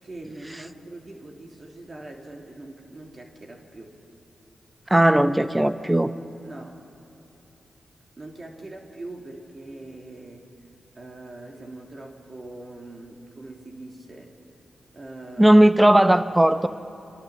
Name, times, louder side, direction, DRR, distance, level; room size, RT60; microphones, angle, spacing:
voice 1, 0.0-4.0 6.4-6.8 8.2-10.5 10.9-14.3 14.9-15.6, right 2 dB, 45° right, 0 dB, 3.2 m, -42 dB
voice 2, 4.9-6.1 15.4-16.7, right 1 dB, 15° right, 11 dB, 1.0 m, -17 dB
30.0 x 23.5 x 7.3 m, 3.0 s
supercardioid pair, 40°, 0 cm